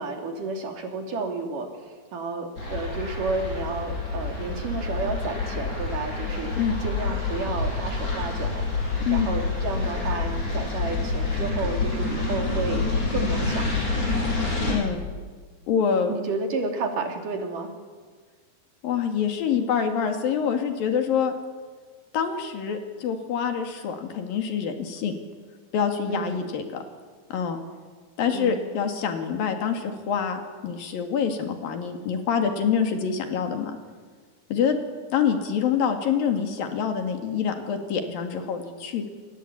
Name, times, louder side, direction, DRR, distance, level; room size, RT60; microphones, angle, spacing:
voice 1, 0.0-6.5 6.8-14.1 16.1-17.7 26.1-26.5 28.3-28.7, right 3 dB, 65° right, 4 dB, 4.4 m, -31 dB
sound 1, 2.6-14.7, left 3 dB, 50° left, 8.3 m, -27 dB
voice 2, 9.0-9.4 14.7-15.0 15.7-16.1 18.8-21.3 22.1-25.2 25.7-26.8 27.3-27.6 28.2-33.8 34.5-34.8 35.1-39.0, left 7 dB, 75° left, 5 dB, 4.0 m, -26 dB
28.5 x 23.5 x 8.8 m, 1.5 s
omnidirectional pair, 4.2 m